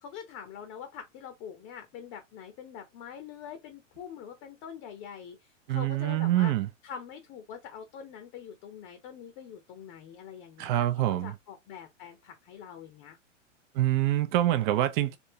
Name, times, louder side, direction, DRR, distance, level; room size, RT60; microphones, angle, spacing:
voice 1, 0.0-6.5 6.8-10.9 11.2-13.2, left 8 dB, 35° left, 0.8 m, -44 dB
voice 2, 5.7-6.7 10.6-11.3 13.7-15.2, right 14 dB, 40° right, 0.7 m, -25 dB
3.5 x 2.7 x 2.8 m
hypercardioid pair, 125°, 38 cm